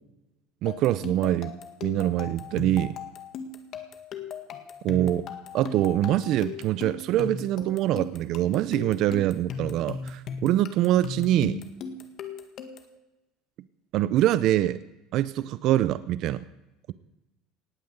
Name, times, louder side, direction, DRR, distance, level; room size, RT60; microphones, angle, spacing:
voice 1, 0.6-1.5 1.8-2.9 4.8-5.3 5.5-11.6 13.9-14.8 15.1-16.4, right 13 dB, 55° right, 15 dB, 0.6 m, -24 dB
sound 1, 0.7-13.0, left 6 dB, 45° left, 1.8 m, -38 dB
18.5 x 9.4 x 8.0 m, 0.96 s
cardioid pair, 140°, 0 cm